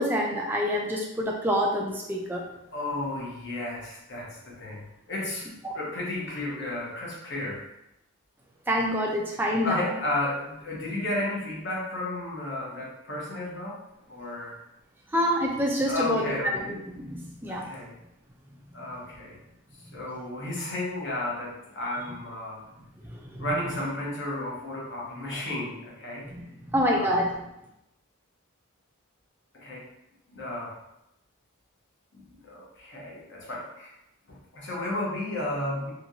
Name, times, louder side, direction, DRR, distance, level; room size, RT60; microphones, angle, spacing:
voice 1, 0.0-2.4 5.6-5.8 8.7-9.9 15.1-17.6 23.1-23.5 26.3-27.3, equal, 10° right, -1 dB, 0.3 m, -27 dB
voice 2, 2.7-4.8 5.1-5.5 5.7-7.6 9.6-13.8 14.1-14.5 15.9-16.7 17.4-17.9 18.7-19.4 19.9-22.6 23.4-26.3 27.0-27.2 29.5-29.9 30.3-30.8 32.1-33.9 34.3-35.9, left 1 dB, 50° left, -4 dB, 0.9 m, -33 dB
2.9 x 2.8 x 2.6 m, 0.87 s
head